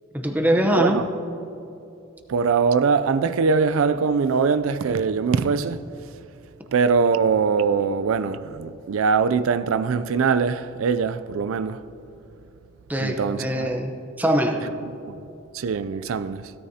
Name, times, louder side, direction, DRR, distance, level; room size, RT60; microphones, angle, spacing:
voice 1, 0.1-1.0 12.9-14.7, equal, 10° right, 0.8 m, -22 dB
voice 2, 0.7-1.1 2.3-5.8 6.7-11.8 13.0-13.7 15.5-16.5, right 5 dB, 90° right, 0.4 m, -22 dB
17.0 x 13.0 x 2.8 m
head